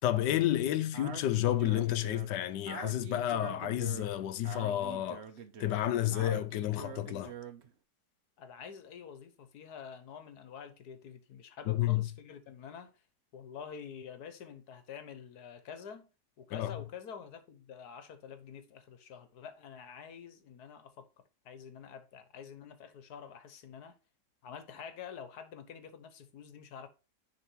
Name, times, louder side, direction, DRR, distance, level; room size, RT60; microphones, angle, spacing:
voice 1, 0.0-5.2 5.6-7.3 11.7-12.0 16.5-16.7, left 13 dB, 90° left, 1.3 m, -30 dB
Speech, 0.9-7.7, right 7 dB, 50° right, 0.9 m, -45 dB
voice 2, 8.4-13.0 13.3-16.1 16.4-24.0 24.4-26.9, left 7 dB, 70° left, 1.4 m, -48 dB
10.0 x 3.5 x 4.5 m
omnidirectional pair, 1.8 m